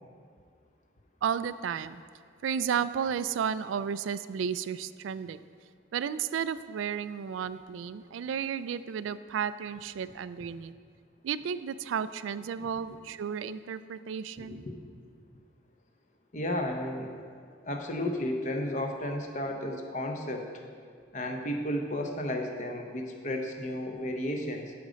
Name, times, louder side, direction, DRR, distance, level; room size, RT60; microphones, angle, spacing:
voice 1, 1.2-2.0 2.4-5.4 5.9-10.7 11.2-14.7, right 7 dB, 90° right, 14 dB, 0.3 m, -33 dB
voice 2, 14.4-14.8 16.3-20.6 21.1-24.7, left 1 dB, 40° left, 3 dB, 0.8 m, -33 dB
11.5 x 5.2 x 5.1 m, 2.1 s
head